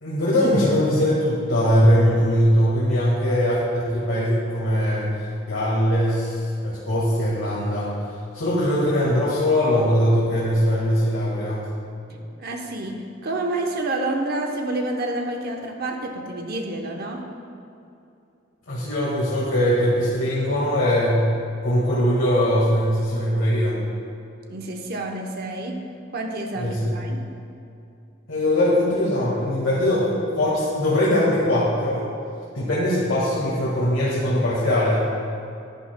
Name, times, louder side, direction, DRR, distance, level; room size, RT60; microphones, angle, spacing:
voice 1, 0.0-8.0 8.3-11.7 18.7-21.3 21.6-23.8 26.6-27.0 28.3-32.1 32.5-35.1, equal, 85° left, -7 dB, 1.7 m, -21 dB
voice 2, 12.1-17.2 24.5-25.8 26.1-27.2, right 2 dB, 55° right, 2 dB, 0.9 m, -29 dB
11.0 x 10.0 x 2.2 m, 2.6 s
head